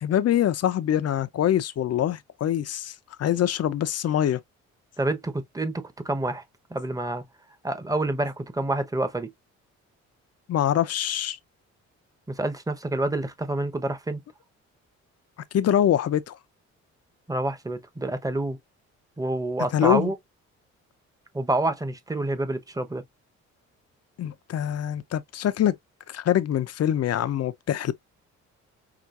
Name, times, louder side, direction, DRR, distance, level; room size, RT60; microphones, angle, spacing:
voice 1, 0.0-4.4 10.5-11.4 15.5-16.3 19.7-20.1 24.2-25.8 26.1-27.9, left 10 dB, 55° left, 0.7 m, -24 dB
voice 2, 5.0-6.4 6.7-7.2 7.6-9.3 12.3-14.2 17.3-18.6 19.2-20.1 21.3-23.0, right 2 dB, 10° right, 1.1 m, -28 dB
6.0 x 2.6 x 2.5 m
cardioid pair, 90°, 30 cm